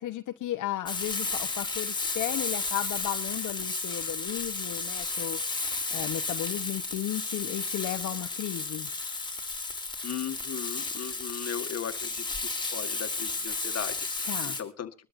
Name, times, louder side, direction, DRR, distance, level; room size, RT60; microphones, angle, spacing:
voice 1, 0.0-5.4 5.9-8.9 14.3-14.6, left 13 dB, 80° left, 6 dB, 1.0 m, -34 dB
Frying (food), 0.9-14.6, left 3 dB, 15° left, 3.3 m, -33 dB
voice 2, 10.0-15.1, left 9 dB, 55° left, 7 dB, 1.8 m, -38 dB
22.5 x 13.0 x 2.6 m, 0.36 s
cardioid pair, 90°, 30 cm